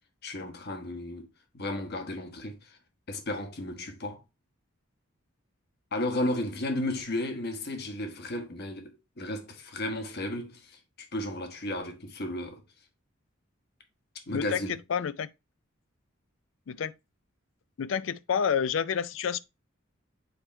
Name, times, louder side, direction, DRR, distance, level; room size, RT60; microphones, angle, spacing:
voice 1, 0.2-1.3 1.5-2.8 3.1-4.2 5.9-10.8 11.1-12.6 14.3-14.8, left 1 dB, 55° left, 1.2 m, -34 dB
voice 2, 14.3-14.6 14.9-15.3 16.7-16.9 17.8-19.4, left 7 dB, 70° left, 0.4 m, -29 dB
7.9 x 3.0 x 4.4 m
head